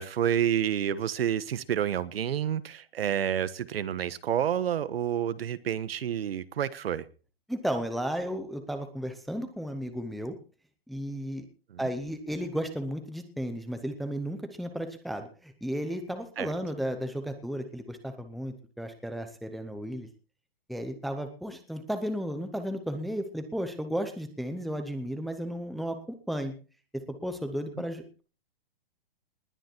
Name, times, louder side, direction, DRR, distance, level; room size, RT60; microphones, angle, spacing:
voice 1, 0.0-7.0 11.7-11.8 16.4-16.5, right 9 dB, 75° right, 15 dB, 1.3 m, -29 dB
voice 2, 7.5-10.4 10.9-11.5 11.8-20.1 20.7-26.5 26.9-28.2, equal, ahead, 6 dB, 0.7 m, -34 dB
20.0 x 9.5 x 4.5 m, 0.36 s
hypercardioid pair, 170°, 30 cm